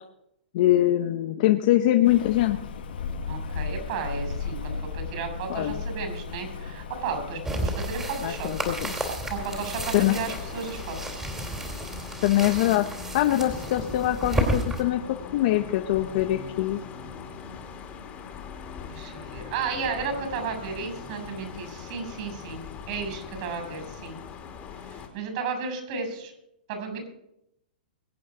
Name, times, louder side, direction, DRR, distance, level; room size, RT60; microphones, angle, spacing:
voice 1, 0.5-2.6 5.5-5.8 8.2-9.0 9.9-10.1 12.2-12.8 13.1-15.0 15.3-16.8, left 14 dB, 50° left, 6 dB, 1.0 m, -23 dB
Rain, 2.0-11.0, left 5 dB, 75° left, 1.9 m, -36 dB
voice 2, 3.3-8.5 9.3-11.2 18.9-22.6 22.9-24.1 24.8-26.3 26.7-27.1, right 5 dB, 45° right, 5 dB, 7.0 m, -33 dB
sound 1, 7.4-14.8, right 1 dB, 10° right, 3.2 m, -32 dB
sound 2, 9.3-25.1, left 6 dB, 25° left, 2.8 m, -41 dB
23.0 x 8.6 x 5.0 m, 0.79 s
hypercardioid pair, 145°, 5 cm